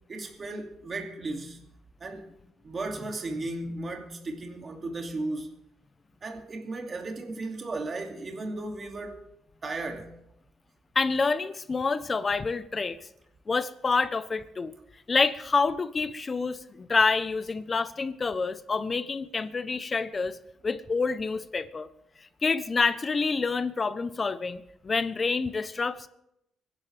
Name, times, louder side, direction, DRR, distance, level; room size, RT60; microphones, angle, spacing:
voice 1, 0.1-1.6 2.0-2.3 2.6-5.5 6.2-9.2 9.6-10.1, right 2 dB, 40° right, 2.7 m, -35 dB
voice 2, 10.9-13.0 13.5-14.7 15.1-20.3 20.6-21.9 22.4-26.1, left 4 dB, 35° left, 1.0 m, -27 dB
25.5 x 11.0 x 3.5 m
cardioid pair, 90°, 0 cm